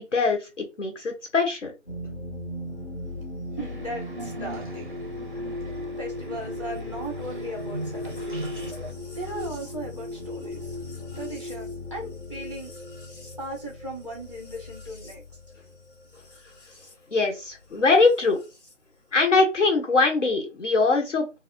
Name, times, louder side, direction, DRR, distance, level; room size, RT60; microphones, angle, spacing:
voice 1, 0.0-1.7 17.1-18.4 19.1-21.4, left 3 dB, 70° left, 1.3 m, -22 dB
sound 1, 1.9-16.9 18.1-18.7, left 2 dB, 45° left, 1.5 m, -37 dB
voice 2, 3.5-4.9 6.0-8.6 9.1-10.8 11.1-12.7 13.4-15.2, right 1 dB, 25° left, 0.7 m, -37 dB
sound 2, 3.6-8.9, right 2 dB, 45° right, 0.4 m, -39 dB
4.1 x 2.1 x 2.5 m
figure-of-eight pair, 165°, 37 cm